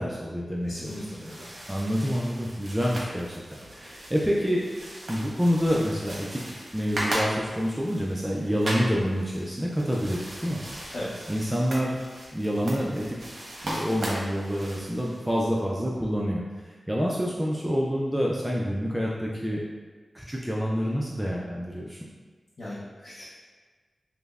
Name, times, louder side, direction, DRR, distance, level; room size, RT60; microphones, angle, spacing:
voice 1, 0.0-1.0 1.7-4.6 5.1-6.4 6.7-10.6 11.3-12.0 12.3-19.6 20.1-22.0, equal, 10° right, -4 dB, 0.3 m, -27 dB
voice 2, 0.6-1.5 10.9-11.3 11.7-11.8 22.6-23.2, left 1 dB, 70° left, -10 dB, 0.6 m, -37 dB
sound 1, 0.6-15.5, right 1 dB, 60° right, 0.8 m, -38 dB
5.3 x 2.0 x 2.3 m, 1.4 s
wide cardioid pair, 85°, 0 cm